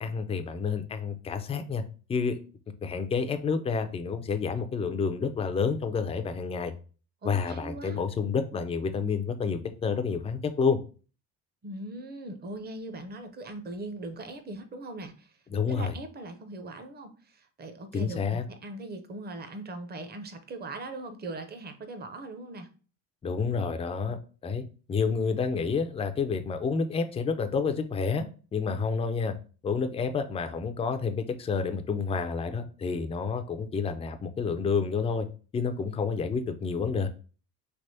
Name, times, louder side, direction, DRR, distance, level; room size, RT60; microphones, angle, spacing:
voice 1, 0.0-1.8 2.1-2.4 2.8-6.7 7.2-10.8 15.5-15.9 17.9-18.4 23.2-28.3 28.5-29.3 29.6-35.3 35.5-37.1, left 5 dB, 15° left, 8 dB, 0.3 m, -29 dB
voice 2, 7.2-8.0 11.6-15.4 15.7-22.7 24.1-24.2, right 2 dB, 25° right, 7 dB, 0.6 m, -40 dB
3.4 x 2.9 x 2.7 m, 0.37 s
supercardioid pair, 95°, 39 cm